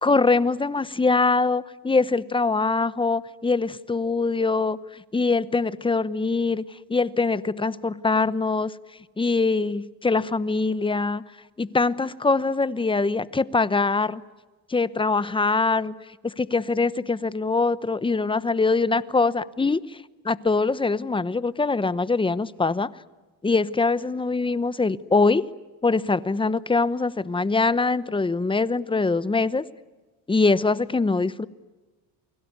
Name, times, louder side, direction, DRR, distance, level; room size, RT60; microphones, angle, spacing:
voice 1, 0.0-6.6 6.9-8.7 9.2-11.2 11.6-14.2 14.7-15.9 16.2-22.9 23.4-25.5 25.8-29.6 30.3-31.5, left 3 dB, 15° left, 16 dB, 0.9 m, -23 dB
29.5 x 21.0 x 9.5 m, 1.2 s
cardioid pair, 115°, 40 cm